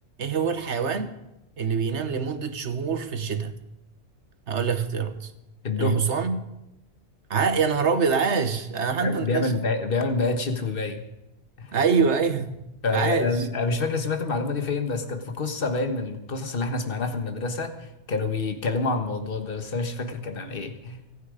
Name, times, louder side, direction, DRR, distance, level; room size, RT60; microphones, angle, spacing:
voice 1, 0.2-1.1 1.6-3.6 4.5-5.3 5.8-6.4 7.3-9.5 11.7-12.6 12.9-13.5, right 5 dB, 80° right, 9 dB, 1.5 m, -25 dB
voice 2, 5.6-6.0 9.0-11.0 11.6-11.7 12.8-17.7 18.1-21.0, left 3 dB, 55° left, 7 dB, 1.6 m, -27 dB
24.5 x 9.1 x 5.1 m, 0.89 s
omnidirectional pair, 1.2 m